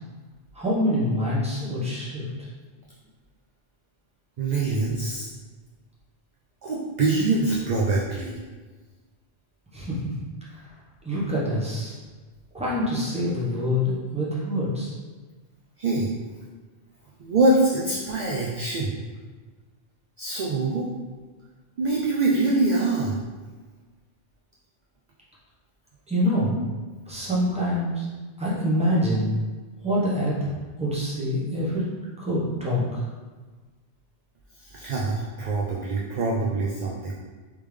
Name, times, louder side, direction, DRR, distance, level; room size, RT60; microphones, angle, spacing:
voice 1, 0.5-2.5 9.7-10.0 10.5-10.7 11.0-12.0 12.5-14.9 26.1-26.6 27.1-28.1 28.4-29.3 29.8-30.5 30.8-31.8 32.2-33.0, equal, 5° right, -8 dB, 0.9 m, -25 dB
voice 2, 4.4-5.3 6.6-8.4 15.8-16.1 17.2-19.0 20.2-20.9 21.8-23.2 34.6-37.1, right 2 dB, 55° right, -3 dB, 0.5 m, -24 dB
3.5 x 3.3 x 3.2 m, 1.4 s
omnidirectional pair, 1.1 m